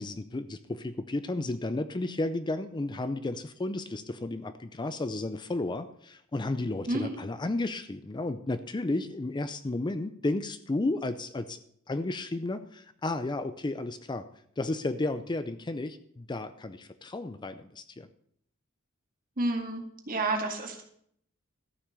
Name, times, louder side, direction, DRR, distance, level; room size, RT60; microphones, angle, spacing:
voice 1, 0.0-11.6 11.9-14.3 14.6-18.1, left 2 dB, 20° left, 11 dB, 0.5 m, -33 dB
voice 2, 6.9-7.2 19.4-20.8, right 2 dB, 40° right, 2 dB, 2.1 m, -30 dB
13.5 x 6.0 x 6.8 m, 0.67 s
head